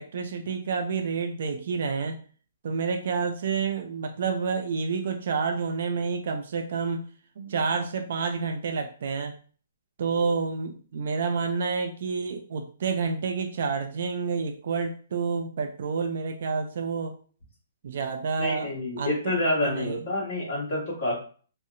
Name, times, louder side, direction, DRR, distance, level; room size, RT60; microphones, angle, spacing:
voice 1, 0.0-2.2 2.6-7.1 7.4-9.4 10.0-17.1 17.8-18.7 19.0-19.4 19.6-20.1, right 5 dB, 50° right, 6 dB, 0.3 m, -29 dB
voice 2, 18.4-21.2, left 1 dB, 30° left, -6 dB, 1.2 m, -28 dB
2.7 x 2.0 x 2.4 m, 0.42 s
hypercardioid pair, 175°, 0 cm